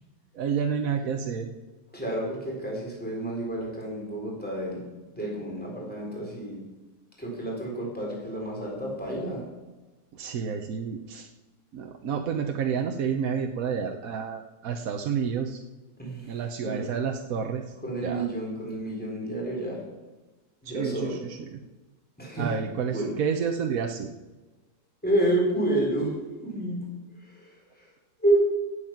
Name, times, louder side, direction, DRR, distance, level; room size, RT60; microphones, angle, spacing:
voice 1, 0.3-1.5 10.1-11.3 11.7-15.6 16.2-17.7 18.0-18.3 20.6-21.6 22.4-24.1, right 6 dB, 60° right, 4 dB, 1.1 m, -30 dB
voice 2, 1.9-4.8 5.1-6.6 7.2-9.4 16.0-16.9 17.8-19.8 20.6-21.2 22.2-22.5 22.8-23.2 25.0-26.1 26.4-26.8 27.2-27.9 28.2-28.4, right 1 dB, 5° left, -3 dB, 3.9 m, -29 dB
16.5 x 8.2 x 5.9 m, 1.2 s
omnidirectional pair, 1.9 m